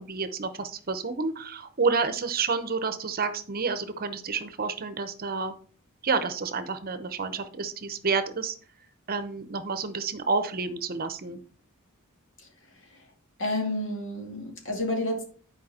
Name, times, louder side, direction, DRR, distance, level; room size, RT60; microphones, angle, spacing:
voice 1, 0.0-5.5 6.0-8.6 9.1-11.4, right 4 dB, 45° right, 11 dB, 0.8 m, -29 dB
voice 2, 12.7-13.1 13.4-15.2, left 1 dB, 60° left, 2 dB, 2.6 m, -30 dB
10.5 x 4.9 x 4.3 m, 0.43 s
head